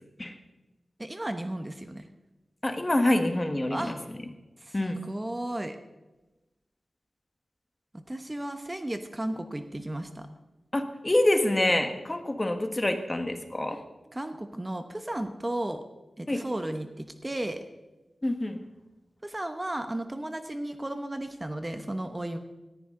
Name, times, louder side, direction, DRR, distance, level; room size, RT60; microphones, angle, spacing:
voice 1, 1.0-2.1 3.7-4.0 4.6-5.8 7.9-10.3 14.1-15.8 16.2-17.6 19.2-22.4, right 1 dB, 20° right, 7 dB, 0.9 m, -34 dB
voice 2, 2.6-3.9 4.7-5.0 10.7-13.8 16.3-16.4 18.2-18.6, left 1 dB, 25° left, 6 dB, 1.4 m, -26 dB
18.5 x 14.0 x 3.8 m, 1.1 s
wide cardioid pair, 100°, 0 cm